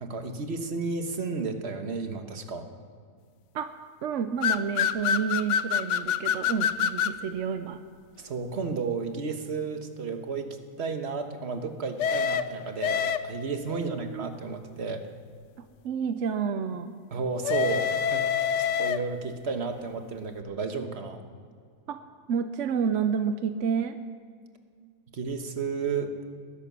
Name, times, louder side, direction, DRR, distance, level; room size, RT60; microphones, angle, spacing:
voice 1, 0.0-2.7 8.2-15.1 17.1-18.3 18.8-21.2 25.1-26.1, right 4 dB, 45° right, 6 dB, 1.4 m, -32 dB
voice 2, 3.5-7.8 13.7-14.2 15.6-17.0 21.9-22.0 22.3-24.0, right 6 dB, 60° right, 9 dB, 0.9 m, -30 dB
sound 1, 4.4-7.2 12.0-13.6 17.4-19.3, left 8 dB, 65° left, 0.8 m, -26 dB
20.5 x 11.0 x 6.1 m, 2.1 s
omnidirectional pair, 1.7 m